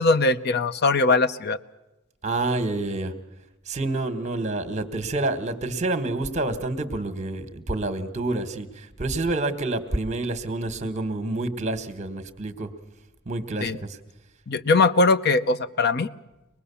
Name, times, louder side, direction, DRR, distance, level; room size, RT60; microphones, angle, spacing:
voice 1, 0.0-1.6 13.6-13.8 14.5-16.1, left 3 dB, 50° left, 14 dB, 0.7 m, -21 dB
voice 2, 2.2-3.1 3.6-12.7 13.2-14.0, right 2 dB, 35° right, 10 dB, 1.4 m, -28 dB
24.5 x 20.0 x 7.0 m, 0.98 s
head